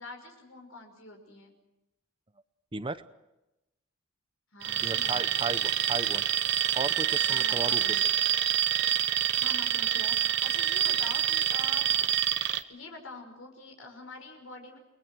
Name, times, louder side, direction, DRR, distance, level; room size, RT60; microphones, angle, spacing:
voice 1, 0.0-1.5 4.5-5.5 7.3-8.0 9.4-12.0 12.7-14.8, left 3 dB, 65° left, 5 dB, 5.5 m, -45 dB
voice 2, 2.7-3.0 4.8-6.2 6.7-7.8, right 3 dB, 25° right, 13 dB, 0.8 m, -35 dB
Alarm, 4.6-12.6, right 10 dB, 55° right, 1.1 m, -27 dB
30.0 x 21.0 x 6.3 m, 0.92 s
head